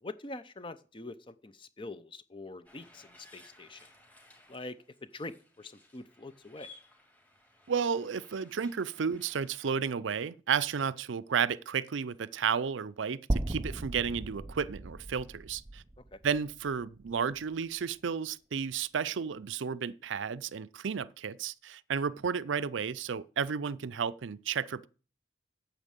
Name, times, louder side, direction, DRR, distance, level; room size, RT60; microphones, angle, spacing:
voice 1, 0.0-3.8 4.5-4.8 5.1-6.7 16.1-16.2, left 2 dB, 25° left, 0.7 m, -44 dB
sound 1, 2.6-9.7, left 2 dB, 10° left, 2.2 m, -58 dB
voice 2, 7.7-15.8 16.2-24.9, right 6 dB, 75° right, 0.5 m, -32 dB
sound 2, 13.3-17.5, right 1 dB, 20° right, 0.5 m, -37 dB
8.9 x 7.4 x 8.1 m
head